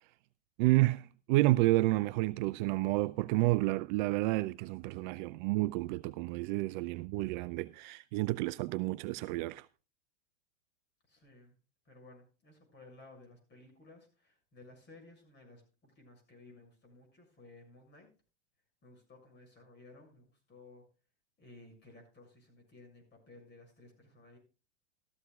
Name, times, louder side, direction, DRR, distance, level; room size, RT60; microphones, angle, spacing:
voice 1, 0.6-9.7, right 19 dB, 45° right, 0.5 m, -30 dB
voice 2, 11.1-11.6 11.8-18.1 18.8-20.8 21.4-24.4, left 2 dB, 30° left, 6.7 m, -57 dB
15.5 x 13.5 x 2.4 m
hypercardioid pair, 95°, 35 cm